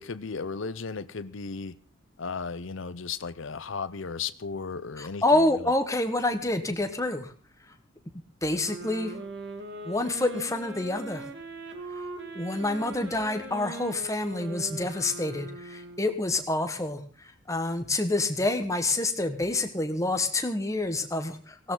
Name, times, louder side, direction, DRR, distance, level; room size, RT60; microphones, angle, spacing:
voice 1, 0.0-1.8 2.2-5.7, left 5 dB, 65° left, 0.7 m, -35 dB
voice 2, 5.0-7.3 8.4-9.1 9.8-11.3 11.9-12.0 12.3-21.7, left 2 dB, 15° left, 1.4 m, -28 dB
sound 1, 8.6-16.3, right 2 dB, 55° right, 2.4 m, -40 dB
18.5 x 16.5 x 3.9 m
head